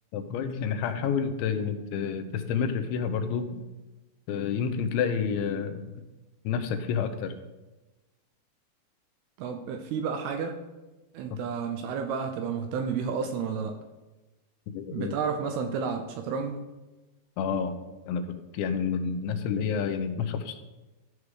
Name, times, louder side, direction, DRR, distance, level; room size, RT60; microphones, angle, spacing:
voice 1, 0.1-3.6 4.3-5.9 6.4-7.3 14.7-15.1 17.4-17.8 18.1-20.6, left 6 dB, 85° left, 7 dB, 3.1 m, -29 dB
voice 2, 9.4-10.6 11.1-13.8 14.9-16.6, right 6 dB, 80° right, 6 dB, 2.4 m, -31 dB
14.0 x 4.7 x 4.9 m, 1.1 s
omnidirectional pair, 5.1 m